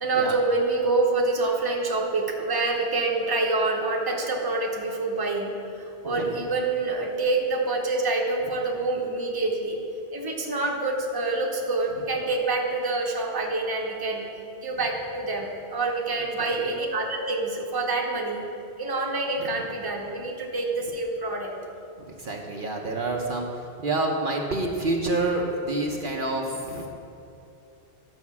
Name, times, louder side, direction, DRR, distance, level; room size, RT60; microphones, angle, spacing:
voice 1, 0.0-9.8 10.1-14.3 14.6-18.4 18.8-21.5, right 3 dB, 20° right, 0 dB, 1.0 m, -26 dB
voice 2, 6.0-6.4 16.4-16.5 19.4-19.5 22.2-26.9, right 2 dB, 55° right, 0 dB, 1.0 m, -28 dB
11.0 x 5.3 x 7.2 m, 2.6 s
omnidirectional pair, 1.1 m